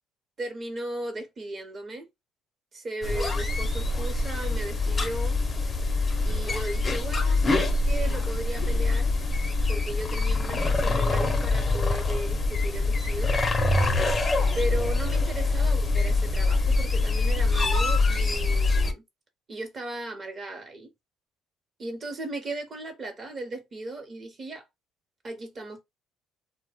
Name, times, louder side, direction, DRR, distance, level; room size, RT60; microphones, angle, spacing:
voice 1, 0.4-2.1 2.7-5.4 6.2-9.1 9.7-13.4 14.5-19.0 19.5-20.9 21.8-24.6 25.2-25.8, right 2 dB, 40° right, 0.8 m, -36 dB
sound 1, 3.0-18.9, left 3 dB, 25° left, 0.6 m, -24 dB
2.1 x 2.1 x 3.3 m
cardioid pair, 90°, 0 cm